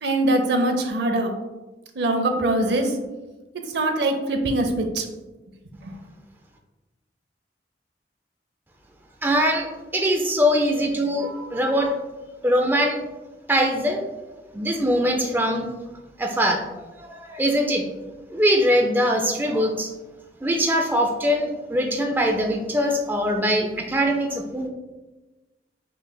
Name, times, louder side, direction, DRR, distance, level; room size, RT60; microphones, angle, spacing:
voice 1, 0.0-1.3 2.0-3.0 3.7-5.0 5.8-6.0, right 1 dB, 70° right, 5 dB, 0.6 m, -22 dB
voice 2, 9.2-9.7 9.9-11.9 12.4-13.0 13.5-14.0 14.5-15.7 16.2-16.7 17.0-17.9 18.3-19.9 20.4-24.7, equal, 10° right, 2 dB, 0.3 m, -22 dB
5.7 x 3.1 x 2.2 m, 1.1 s
head